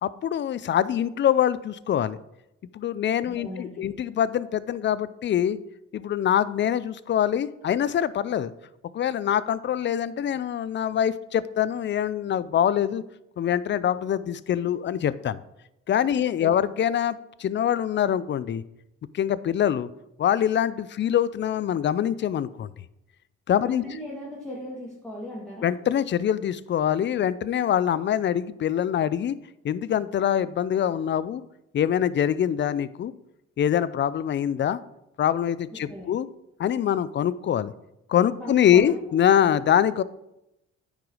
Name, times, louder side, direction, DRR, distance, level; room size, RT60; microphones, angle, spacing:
voice 1, 0.0-2.2 2.7-5.6 5.9-8.5 8.9-13.0 13.4-15.4 15.9-18.6 19.1-19.9 20.2-22.7 23.5-23.8 25.6-29.4 29.6-31.4 31.7-33.1 33.6-34.8 35.2-36.3 36.6-37.7 38.1-40.0, left 10 dB, 35° left, 17 dB, 0.4 m, -24 dB
voice 2, 3.3-3.9 16.1-16.6 23.6-25.7 35.7-36.1 38.4-39.0, equal, 5° left, -4 dB, 2.0 m, -38 dB
9.0 x 5.0 x 4.8 m, 0.87 s
supercardioid pair, 75°, 31 cm